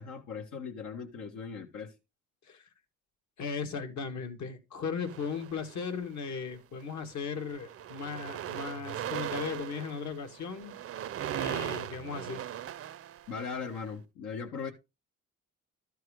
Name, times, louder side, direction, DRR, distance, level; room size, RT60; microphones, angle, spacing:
voice 1, 0.0-1.9 13.3-14.7, left 5 dB, 85° left, 1.6 m, -39 dB
voice 2, 3.4-10.8 11.3-12.4, left 5 dB, 65° left, 1.9 m, -37 dB
sound 1, 5.0-6.0 6.8-7.0 7.3-13.8, right 10 dB, 50° right, 0.6 m, -39 dB
13.0 x 4.6 x 4.8 m
cardioid pair, 90°, 30 cm